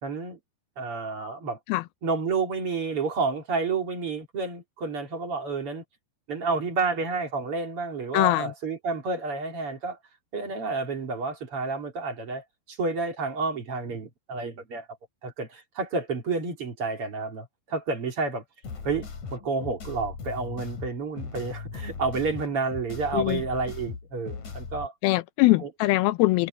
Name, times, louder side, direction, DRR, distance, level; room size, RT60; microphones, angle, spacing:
voice 1, 0.0-0.4 0.8-1.6 2.0-5.8 6.3-10.0 10.3-14.9 15.2-18.4 18.8-24.9 25.6-25.7, right 4 dB, 35° right, 3.3 m, -30 dB
voice 2, 8.1-8.5 23.1-23.4 25.0-26.5, left 19 dB, 80° left, 2.3 m, -22 dB
sound 1, 18.6-24.9, left 5 dB, 45° left, 4.5 m, -38 dB
omnidirectional pair, 4.8 m